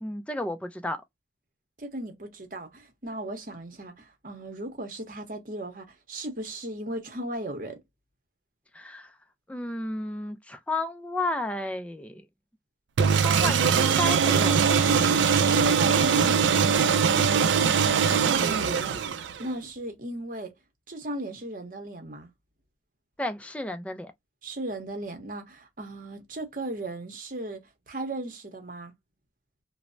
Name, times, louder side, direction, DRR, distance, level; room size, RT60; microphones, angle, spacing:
voice 1, 0.0-1.0 8.7-9.1 9.5-12.2 13.1-14.8 23.2-24.1, left 1 dB, 5° left, 0.3 m, -32 dB
voice 2, 1.8-7.8 15.4-20.5 20.9-22.3 24.4-28.9, right 1 dB, 45° right, 0.8 m, -37 dB
sound 1, 13.0-19.5, right 6 dB, 80° right, 0.4 m, -22 dB
3.1 x 2.0 x 2.5 m
head